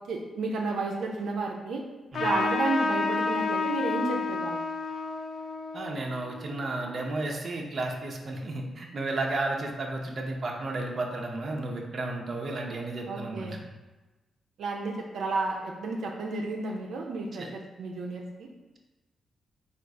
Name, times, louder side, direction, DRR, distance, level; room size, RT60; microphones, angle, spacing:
voice 1, 0.1-1.8 2.2-4.6 13.1-13.6 14.6-18.5, right 3 dB, 85° right, 0 dB, 0.5 m, -32 dB
Trumpet, 2.1-7.1, left 4 dB, 65° left, 0.5 m, -31 dB
voice 2, 5.7-13.5 17.4-17.5, right 2 dB, 45° right, 0 dB, 0.6 m, -33 dB
3.9 x 2.4 x 4.6 m, 1.1 s
cardioid pair, 105°, 0 cm